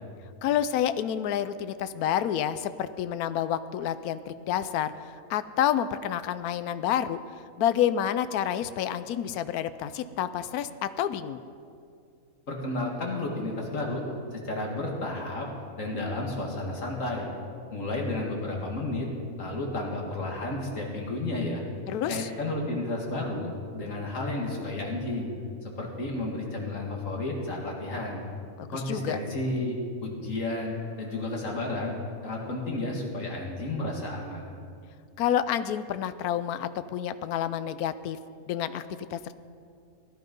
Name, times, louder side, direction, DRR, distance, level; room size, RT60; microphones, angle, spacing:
voice 1, 0.4-4.9 5.3-7.2 7.6-11.4 21.9-22.3 28.6-29.2 35.2-38.2 38.5-38.8 39.1-39.3, left 10 dB, 80° left, 12 dB, 1.1 m, -29 dB
voice 2, 12.5-14.0 14.3-15.5 15.8-17.3 17.7-19.1 19.4-21.6 22.1-25.3 25.6-28.2 28.7-31.9 32.2-34.5, left 2 dB, 55° left, -1 dB, 2.5 m, -32 dB
17.0 x 11.5 x 5.4 m, 2.3 s
omnidirectional pair, 1.6 m